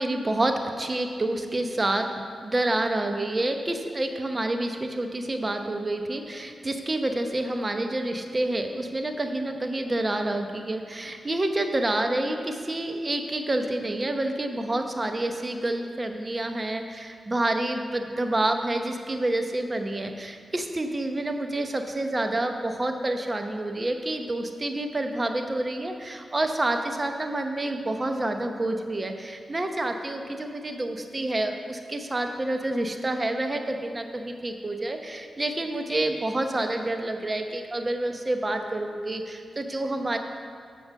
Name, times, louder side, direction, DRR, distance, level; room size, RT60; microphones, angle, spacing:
voice 1, 0.0-40.2, right 1 dB, 35° right, 5 dB, 0.8 m, -28 dB
7.3 x 5.1 x 6.3 m, 2.1 s
cardioid pair, 50°, 0 cm